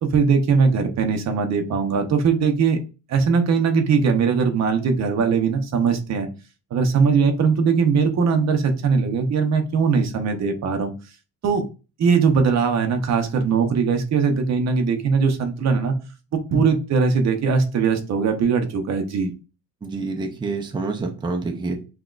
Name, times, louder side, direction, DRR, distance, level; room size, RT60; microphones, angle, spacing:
voice 1, 0.0-2.8 3.1-6.3 6.7-10.9 11.4-11.6 12.0-16.0 16.3-19.3, right 5 dB, 45° right, 5 dB, 0.7 m, -20 dB
voice 2, 19.8-21.8, right 3 dB, 15° right, 4 dB, 0.5 m, -27 dB
5.8 x 2.3 x 2.4 m, 0.32 s
cardioid pair, 150°, 38 cm